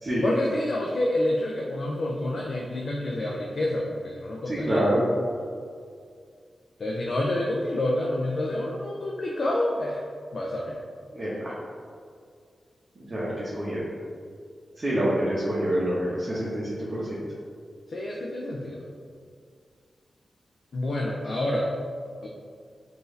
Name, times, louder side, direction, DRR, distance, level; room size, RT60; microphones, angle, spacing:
voice 1, 0.2-4.9 6.8-10.0 10.3-10.8 17.9-18.8 20.7-21.7 22.2-22.3, left 1 dB, 65° left, -2 dB, 0.4 m, -28 dB
voice 2, 4.5-5.0 11.1-11.5 13.1-13.8 14.8-17.2, right 1 dB, 45° right, -9 dB, 0.9 m, -26 dB
4.5 x 2.6 x 3.2 m, 2.2 s
cardioid pair, 65°, 0 cm